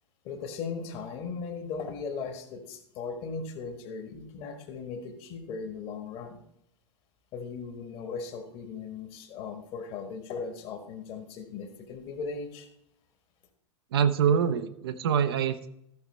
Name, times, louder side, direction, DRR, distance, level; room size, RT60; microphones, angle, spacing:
voice 1, 0.2-6.4 7.3-12.7, left 5 dB, 35° left, 7 dB, 1.5 m, -38 dB
voice 2, 13.9-15.7, right 7 dB, 55° right, 9 dB, 0.7 m, -25 dB
14.0 x 5.9 x 4.3 m, 0.76 s
figure-of-eight pair, 95°, 15 cm